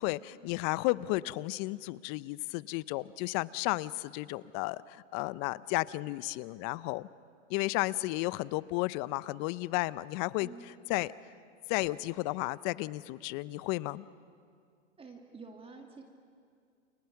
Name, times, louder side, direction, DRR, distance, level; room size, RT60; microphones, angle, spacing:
voice 1, 0.0-7.1 7.5-10.5 10.9-11.1 11.7-14.0, left 20 dB, 40° left, 19 dB, 0.7 m, -33 dB
voice 2, 10.4-10.7 15.0-16.0, right 4 dB, 15° right, 3 dB, 2.1 m, -49 dB
29.5 x 28.5 x 5.9 m, 2.2 s
hypercardioid pair, 120°, 37 cm